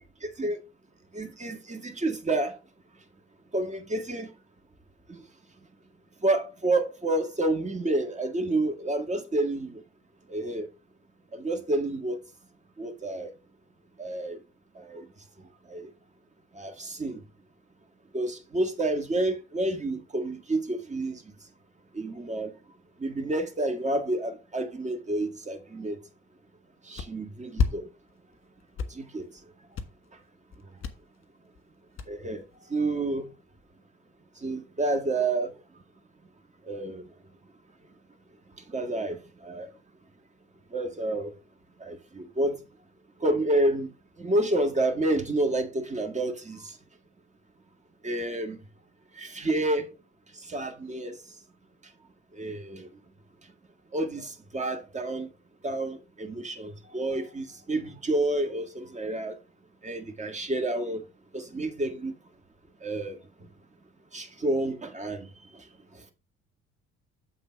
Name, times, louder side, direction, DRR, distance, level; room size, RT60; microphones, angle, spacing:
voice 1, 0.2-0.6 1.1-2.6 3.5-4.3 5.1-5.2 6.2-9.8 10.3-10.7 11.3-12.2 12.8-13.3 14.0-14.4 14.8-15.1 15.7-15.9 16.5-17.2 18.1-21.3 21.9-22.5 23.0-26.0 26.8-27.9 28.9-29.3 32.1-33.3 34.4-35.5 36.6-37.1 38.7-39.7 40.7-41.3 41.8-42.6 43.2-46.8 48.0-48.6 49.2-49.9 50.4-51.2 52.3-52.9 53.9-55.3 55.6-59.4 59.8-61.0 61.3-62.1 62.8-63.2 64.1-65.3 65.5-65.7 65.9-66.1, right 2 dB, 20° right, 1.9 m, -29 dB
sound 1, 27.0-27.1 27.6-27.7 28.1-28.4 28.6-29.4 29.7-30.1 30.5-30.9 31.2-31.3 31.6-31.7 32.0-32.5, left 5 dB, 40° left, 1.4 m, -29 dB
7.8 x 4.0 x 5.2 m
hypercardioid pair, 60°, 32 cm